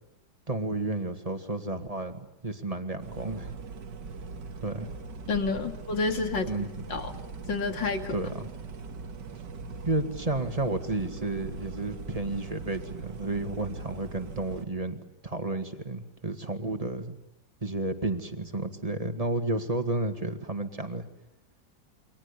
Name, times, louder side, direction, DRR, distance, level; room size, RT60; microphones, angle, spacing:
voice 1, 0.5-3.5 4.6-4.9 6.5-7.0 8.1-8.5 9.8-15.0 15.2-17.2 17.6-21.1, right 2 dB, 20° right, 8 dB, 2.1 m, -32 dB
sound 1, 3.0-14.7, right 4 dB, 70° right, 2.3 m, -41 dB
voice 2, 5.3-6.5 6.9-7.1 7.5-8.2, left 4 dB, 80° left, 6 dB, 3.2 m, -29 dB
29.0 x 24.5 x 8.5 m, 0.83 s
omnidirectional pair, 2.0 m